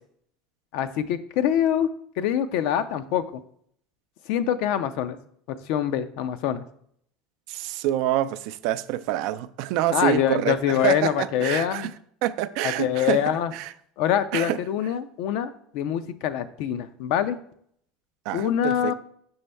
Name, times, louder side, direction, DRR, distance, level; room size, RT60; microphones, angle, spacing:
voice 1, 0.7-1.9 2.2-3.4 4.3-5.2 5.5-6.6 9.9-11.9 12.6-13.5 14.0-17.4 18.3-18.9, left 10 dB, 70° left, 0.5 m, -25 dB
voice 2, 7.5-11.9 12.2-13.7 14.3-14.6 18.3-18.9, right 12 dB, 70° right, 0.3 m, -27 dB
5.5 x 5.3 x 3.3 m
supercardioid pair, 95°, 0 cm